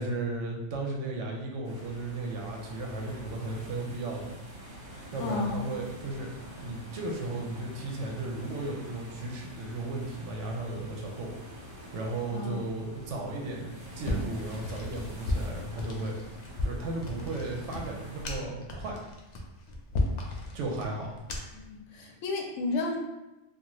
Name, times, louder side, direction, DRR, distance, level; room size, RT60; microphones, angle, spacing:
voice 1, 0.0-4.4 5.1-6.3 6.6-11.3 11.6-16.2 16.6-19.0 20.5-21.1, right 2 dB, 85° right, 0 dB, 1.0 m, -35 dB
sound 1, 1.6-18.2, equal, 50° right, 1.3 m, -46 dB
voice 2, 5.2-5.6 12.3-12.6 21.5-23.0, left 3 dB, 85° left, 1 dB, 0.9 m, -32 dB
sound 2, 14.0-21.7, left 1 dB, 65° left, 0.4 m, -35 dB
2.5 x 2.4 x 3.0 m, 0.97 s
omnidirectional pair, 1.2 m